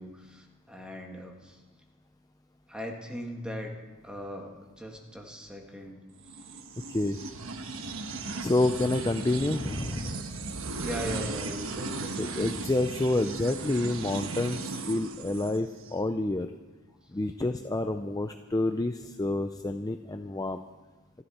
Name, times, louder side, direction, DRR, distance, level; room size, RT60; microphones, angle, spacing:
voice 1, 0.0-1.6 2.7-3.7 4.0-6.0 10.8-12.6 17.1-17.2, equal, 5° right, 1 dB, 1.8 m, -39 dB
sound 1, 6.2-15.9, right 3 dB, 60° right, 1.2 m, -37 dB
voice 2, 8.4-10.2 12.2-16.5 17.1-20.7, left 2 dB, 15° left, 7 dB, 0.4 m, -28 dB
27.5 x 11.0 x 4.3 m, 1.2 s
head